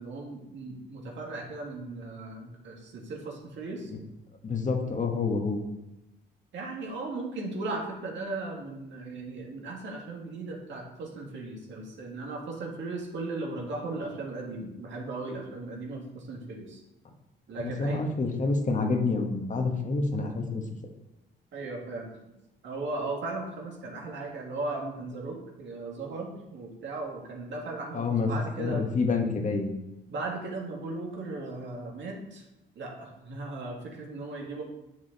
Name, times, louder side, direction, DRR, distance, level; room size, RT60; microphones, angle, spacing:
voice 1, 0.0-3.9 6.5-16.8 17.5-18.0 21.5-22.1 22.6-28.8 30.1-32.5 32.8-34.6, right 2 dB, 70° right, -1 dB, 2.1 m, -37 dB
voice 2, 4.4-5.6 17.6-20.6 27.9-28.3 28.6-29.8, left 4 dB, 40° left, 3 dB, 1.3 m, -28 dB
7.4 x 6.3 x 4.1 m, 0.94 s
cardioid pair, 90°, 20 cm